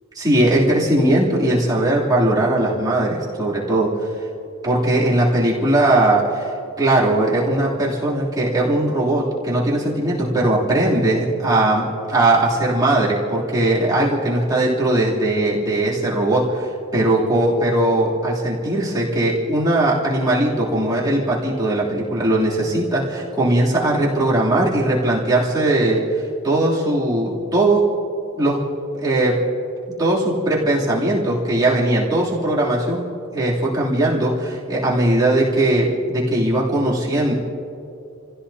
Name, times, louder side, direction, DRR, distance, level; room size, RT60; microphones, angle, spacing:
voice 1, 0.1-3.9 4.6-6.5 6.8-26.0 26.4-27.8 28.4-28.6 28.9-29.3 30.0-33.0 33.3-37.3, right 1 dB, 20° right, -8 dB, 3.1 m, -19 dB
29.5 x 16.0 x 2.8 m, 2.7 s
head